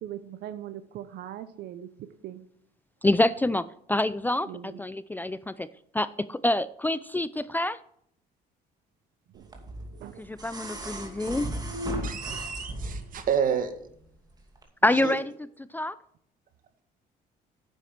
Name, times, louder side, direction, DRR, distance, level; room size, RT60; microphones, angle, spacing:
voice 1, 0.0-2.4 4.5-4.8 9.3-10.3, right 11 dB, 75° right, 11 dB, 1.0 m, -41 dB
voice 2, 3.0-5.7 5.9-7.8 10.2-11.5 14.8-15.3 15.7-16.0, left 1 dB, 10° left, 16 dB, 0.4 m, -26 dB
sound 1, 9.5-13.3 14.6-14.7, right 1 dB, 25° right, 2.5 m, -35 dB
voice 3, 12.0-13.7 15.0-15.2, right 7 dB, 55° right, 8 dB, 2.0 m, -29 dB
10.0 x 8.2 x 5.9 m, 0.68 s
cardioid pair, 110°, 17 cm